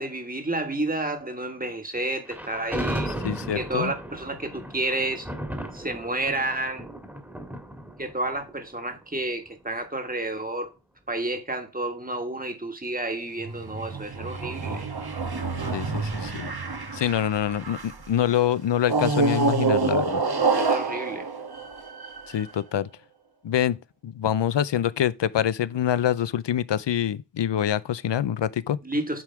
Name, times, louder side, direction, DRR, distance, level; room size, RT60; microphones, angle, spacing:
voice 1, 0.0-3.1 3.5-5.3 5.7-6.8 8.0-10.7 11.1-14.9 20.3-21.3 28.8-29.2, right 2 dB, 20° right, 1.7 m, -30 dB
Thunder, 2.3-9.5, right 1 dB, 5° right, 1.7 m, -35 dB
voice 2, 3.2-3.9 15.7-16.5 16.9-20.2 22.3-22.9 23.4-23.8 24.0-28.8, left 10 dB, 85° left, 0.5 m, -25 dB
sound 1, 13.4-18.0 18.8-22.4, right 4 dB, 60° right, 1.2 m, -27 dB
9.0 x 3.5 x 4.6 m
wide cardioid pair, 45°, 42 cm